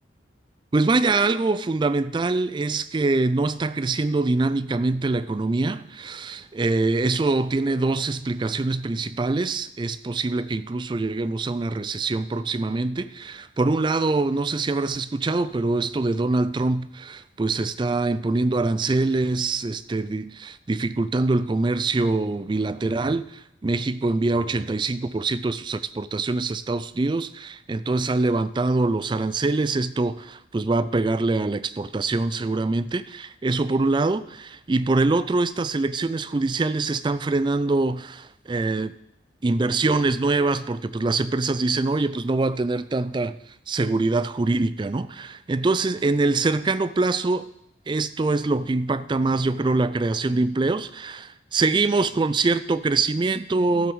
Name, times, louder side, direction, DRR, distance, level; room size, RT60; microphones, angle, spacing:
voice 1, 0.7-38.9 39.4-43.4 43.7-47.5 47.9-53.9, right 3 dB, 25° right, 15 dB, 0.3 m, -24 dB
13.0 x 7.7 x 5.5 m, 0.80 s
head